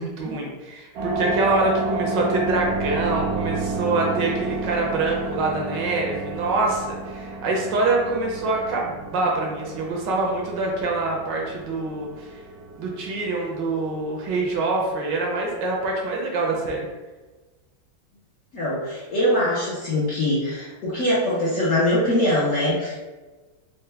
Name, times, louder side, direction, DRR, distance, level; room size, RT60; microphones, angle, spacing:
voice 1, 0.0-12.4 12.8-16.9, right 3 dB, 70° right, -1 dB, 1.2 m, -25 dB
sound 1, 1.0-15.9, right 3 dB, 90° right, 1.4 m, -31 dB
voice 2, 18.5-23.0, left 1 dB, 60° left, -8 dB, 0.8 m, -22 dB
4.4 x 2.1 x 3.3 m, 1.2 s
omnidirectional pair, 2.1 m